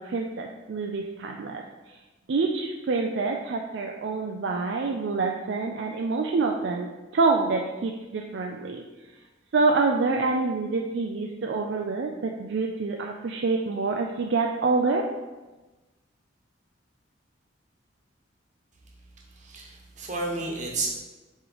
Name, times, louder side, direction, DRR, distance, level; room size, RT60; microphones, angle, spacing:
voice 1, 0.0-1.6 2.3-8.8 9.5-15.1, right 3 dB, 60° right, 1 dB, 0.4 m, -26 dB
voice 2, 19.4-20.9, right 3 dB, 40° right, -1 dB, 1.1 m, -31 dB
7.9 x 3.2 x 3.9 m, 1.2 s
head